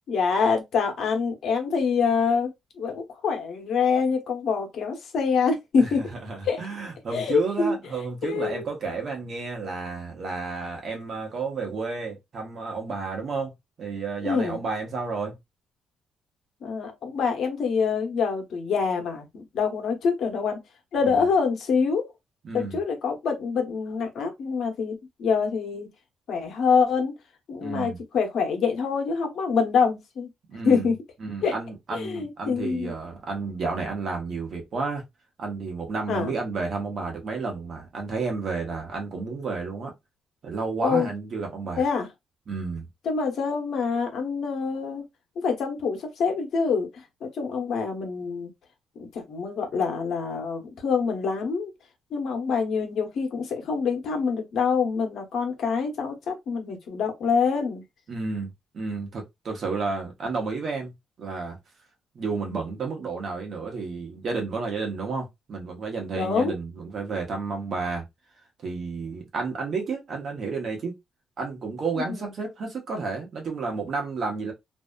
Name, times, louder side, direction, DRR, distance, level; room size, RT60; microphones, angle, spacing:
voice 1, 0.1-2.5 2.8-6.0 6.4-6.6 7.1-7.7 8.2-8.6 14.2-14.6 16.6-20.6 20.9-22.0 22.5-25.9 26.3-27.1 27.5-30.3 30.6-30.9 31.4-31.5 31.9-32.9 36.1-36.3 40.8-41.1 41.8-42.1 43.0-45.0 45.4-48.5 49.0-51.7 52.1-57.8 66.1-66.6 71.9-72.3, left 5 dB, 65° left, 0.9 m, -25 dB
voice 2, 5.8-15.4 21.0-21.2 22.4-22.8 27.6-28.0 30.5-30.9 31.2-35.0 35.4-39.9 40.4-41.8 42.5-42.9 58.1-61.6 62.1-68.0 68.6-70.9 71.4-74.5, right 4 dB, 55° right, 1.1 m, -31 dB
2.7 x 2.3 x 2.2 m
cardioid pair, 90°, 0 cm